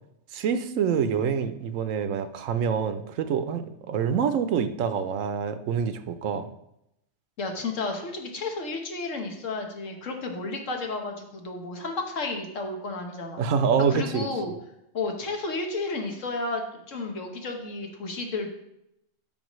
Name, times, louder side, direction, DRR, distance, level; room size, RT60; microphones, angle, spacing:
voice 1, 0.3-6.5 13.4-14.3, right 7 dB, 80° right, 10 dB, 1.0 m, -26 dB
voice 2, 7.4-13.4 13.9-14.5 14.9-18.5, left 3 dB, 70° left, 3 dB, 1.6 m, -32 dB
12.5 x 5.6 x 3.1 m, 0.82 s
omnidirectional pair, 1.3 m